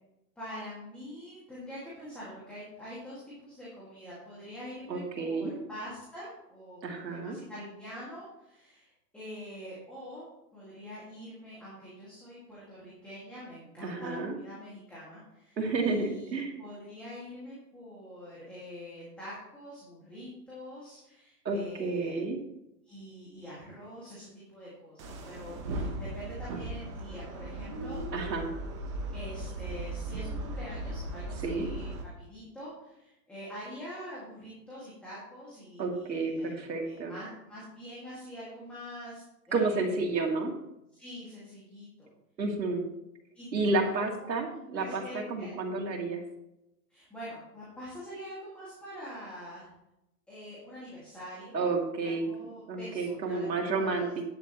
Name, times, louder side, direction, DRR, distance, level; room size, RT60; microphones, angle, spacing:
voice 1, 0.4-10.2 10.5-22.2 22.8-28.0 29.1-36.6 36.8-40.1 41.0-42.1 43.3-43.9 44.2-45.5 46.9-49.7 50.3-51.5 52.0-54.2, equal, ahead, -9 dB, 2.0 m, -45 dB
voice 2, 4.9-5.5 6.8-7.4 13.8-14.4 15.6-16.5 21.4-22.4 28.1-28.6 31.4-31.7 35.8-37.1 39.5-40.5 42.4-42.9 43.5-46.2 51.5-52.2 52.7-54.2, right 3 dB, 85° right, 1 dB, 2.7 m, -31 dB
sound 1, 25.0-32.0, right 1 dB, 20° right, 1.0 m, -37 dB
11.0 x 10.5 x 3.1 m, 0.86 s
hypercardioid pair, 165°, 50 cm